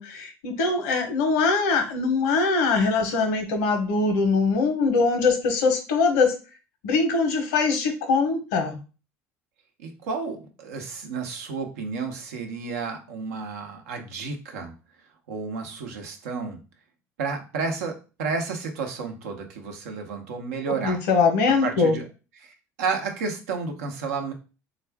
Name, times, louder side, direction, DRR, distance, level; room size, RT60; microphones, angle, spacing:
voice 1, 0.0-6.3 6.8-8.8 20.8-22.0, left 4 dB, 85° left, 6 dB, 0.8 m, -22 dB
voice 2, 9.8-14.7 15.3-16.6 17.2-21.0 21.6-22.0 22.4-24.3, right 4 dB, 90° right, 4 dB, 0.8 m, -31 dB
3.5 x 2.4 x 3.4 m, 0.32 s
supercardioid pair, 80°, 8 cm